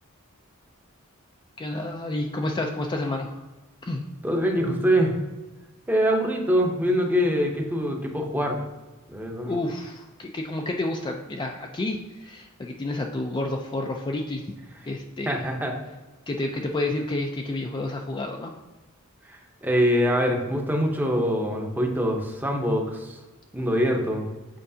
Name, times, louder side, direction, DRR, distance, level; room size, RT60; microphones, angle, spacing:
voice 1, 1.6-3.4 3.8-4.0 9.5-14.4 14.9-15.5 16.3-18.5, left 2 dB, 20° left, 2 dB, 0.4 m, -30 dB
voice 2, 4.2-5.2 5.9-8.6 9.1-9.5 15.3-15.7 19.3-23.2 23.5-24.3, equal, 10° right, 2 dB, 0.7 m, -24 dB
7.7 x 4.6 x 2.7 m, 1.1 s
head